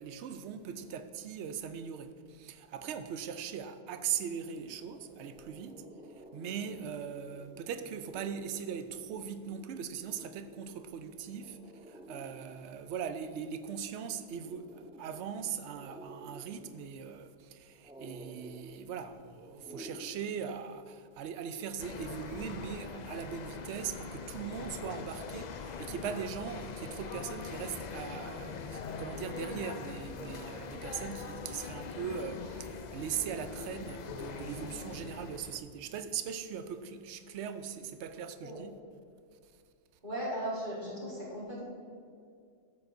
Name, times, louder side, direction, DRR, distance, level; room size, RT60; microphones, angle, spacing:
voice 1, 0.0-5.9 6.2-11.6 11.9-38.8, right 7 dB, 80° right, 0.9 m, -40 dB
sound 1, 4.0-20.1, equal, 10° right, 0.4 m, -53 dB
sound 2, 21.8-35.6, left 5 dB, 55° left, 0.5 m, -42 dB
voice 2, 40.0-41.6, right 1 dB, 45° right, 1.8 m, -37 dB
13.5 x 7.4 x 2.6 m
omnidirectional pair, 1.1 m